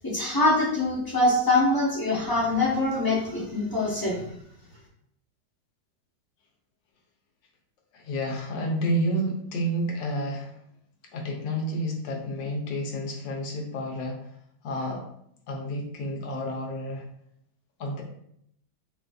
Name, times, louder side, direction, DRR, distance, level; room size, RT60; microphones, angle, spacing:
voice 1, 0.0-4.2, left 2 dB, 25° left, -6 dB, 0.5 m, -24 dB
voice 2, 7.9-10.5 11.1-14.2 14.6-15.0 15.5-17.0 17.8-18.0, equal, 90° left, 0 dB, 1.5 m, -30 dB
4.7 x 2.6 x 2.3 m, 0.72 s
omnidirectional pair, 1.9 m